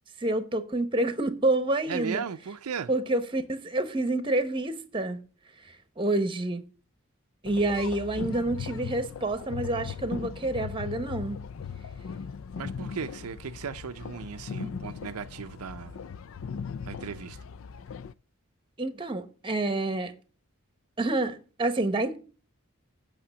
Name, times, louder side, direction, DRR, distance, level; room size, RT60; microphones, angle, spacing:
voice 1, 0.2-2.2 2.9-5.2 5.6-6.6 7.4-11.4 14.6-14.7 18.8-20.1 21.0-22.2, right 2 dB, 20° right, 0.9 m, -28 dB
voice 2, 1.9-2.9 12.6-16.0 16.8-17.4, right 6 dB, 85° right, 0.5 m, -36 dB
sound 1, 7.5-18.1, left 6 dB, 60° left, 0.4 m, -38 dB
8.6 x 5.9 x 6.8 m
head